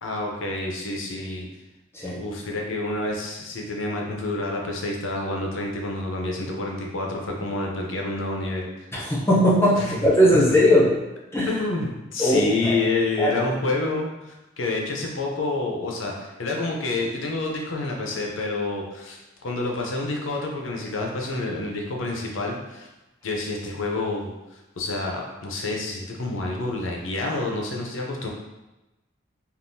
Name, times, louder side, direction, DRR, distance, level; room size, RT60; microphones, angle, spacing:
voice 1, 0.0-1.5 2.1-8.7 8.9-9.1 9.8-10.0 11.5-22.9 23.2-24.3 24.8-28.3, left 2 dB, 85° left, 0 dB, 0.6 m, -28 dB
voice 2, 9.0-10.9 11.3-11.5 12.2-12.8 13.2-13.3, equal, 10° left, -6 dB, 0.6 m, -19 dB
3.5 x 2.4 x 2.6 m, 1.0 s
head